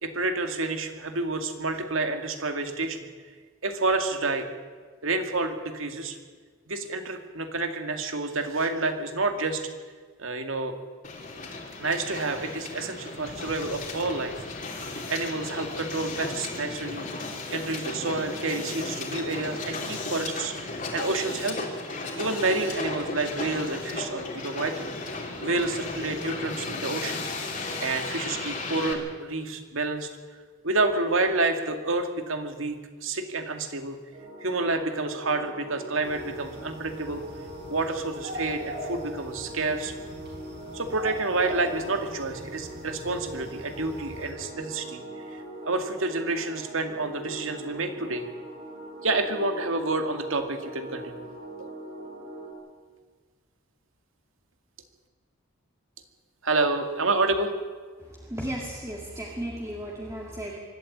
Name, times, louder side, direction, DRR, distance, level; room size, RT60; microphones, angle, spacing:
voice 1, 0.0-3.0 3.6-4.5 5.0-6.2 6.7-9.6 10.2-10.7 11.8-14.3 15.1-21.7 22.2-24.9 25.4-27.3 27.8-30.1 30.6-34.0 34.4-37.2 37.7-39.9 40.7-45.0 45.3-48.3 49.0-51.2 51.6-51.7 56.4-57.5, right 3 dB, 80° right, 6 dB, 2.3 m, -29 dB
Hiss, 11.0-28.9, left 3 dB, 40° left, 3.1 m, -35 dB
sound 1, 34.1-52.5, right 1 dB, 35° right, 5.6 m, -41 dB
sound 2, 36.0-44.3, right 1 dB, 50° right, 6.0 m, -41 dB
voice 2, 58.0-60.6, right 1 dB, 15° right, -2 dB, 2.1 m, -35 dB
24.0 x 12.5 x 8.8 m, 1.5 s
head